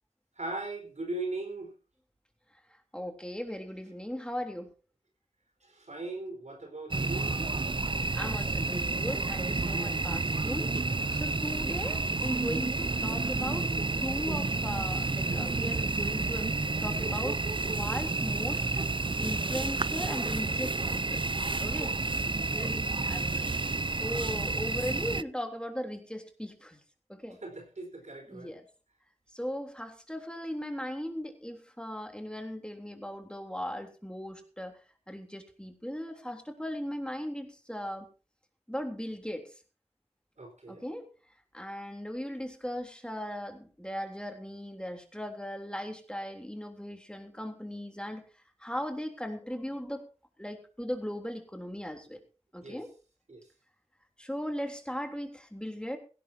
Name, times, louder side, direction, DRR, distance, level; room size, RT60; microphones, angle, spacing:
voice 1, 0.4-1.7 5.6-7.4 21.7-22.0 27.4-28.6 40.4-40.8 52.6-52.8 53.3-53.5, right 2 dB, 85° right, 4.7 m, -39 dB
voice 2, 2.9-4.7 8.1-10.8 11.1-13.7 14.0-16.5 16.8-18.7 19.2-21.3 21.6-21.9 22.5-23.4 23.8-26.8 27.1-27.4 28.3-28.6 29.3-34.8 35.1-38.1 38.7-39.5 40.7-41.1 41.5-48.2 48.6-50.1 50.4-52.2 52.5-52.9 54.2-56.0, equal, 10° left, 3.4 m, -38 dB
sound 1, 6.9-25.2, right 3 dB, 45° right, 0.6 m, -30 dB
17.0 x 17.0 x 2.9 m
wide cardioid pair, 45°, 12 cm